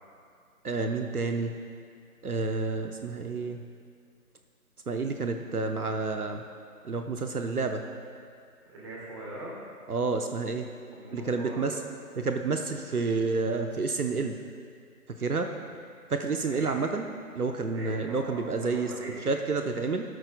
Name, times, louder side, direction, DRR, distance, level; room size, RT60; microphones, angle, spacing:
voice 1, 0.6-1.5 2.2-3.6 4.9-6.4 6.8-7.8 9.9-10.7 11.1-11.8 12.2-14.4 15.1-15.5 16.1-17.1 17.3-18.9 19.2-20.0, right 4 dB, 70° right, 5 dB, 0.9 m, -29 dB
voice 2, 8.7-9.5 10.9-11.7 15.4-15.6 16.5-16.8 17.7-18.4 18.6-19.3, right 1 dB, 15° right, -4 dB, 1.7 m, -42 dB
17.0 x 13.0 x 2.3 m, 2.3 s
figure-of-eight pair, 155°, 46 cm